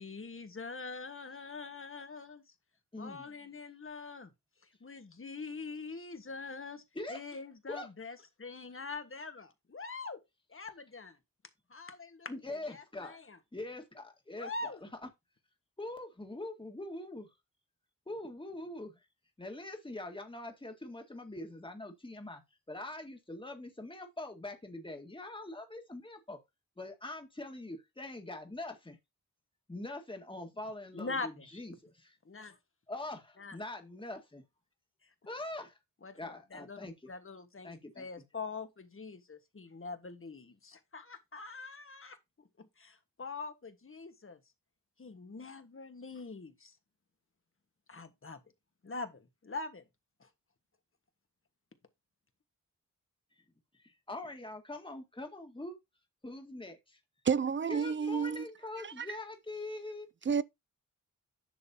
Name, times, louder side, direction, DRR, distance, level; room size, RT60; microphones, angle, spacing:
voice 1, 0.0-2.4 3.0-4.3 4.8-6.8 7.1-10.2 10.5-11.2 11.7-13.4 14.3-14.8 30.9-31.6 32.2-32.6 33.4-33.6 35.0-35.1 36.0-44.4 45.0-46.8 47.9-48.4 48.8-49.8 50.2-50.3, left 4 dB, 40° left, 1.5 m, -44 dB
voice 2, 2.9-3.2 7.0-7.2 7.7-7.9 12.3-13.2 13.5-14.9 15.8-17.3 18.1-19.0 19.4-22.4 22.7-26.4 26.8-29.0 29.7-32.2 32.9-34.4 35.3-35.8 36.2-36.9 37.6-38.1 53.8-55.7 56.2-57.0 57.7-60.1, left 2 dB, 15° left, 1.9 m, -43 dB
voice 3, 57.2-58.5 58.8-59.1 60.3-60.4, right 6 dB, 35° right, 0.5 m, -30 dB
10.5 x 6.4 x 2.8 m
wide cardioid pair, 95°, 33 cm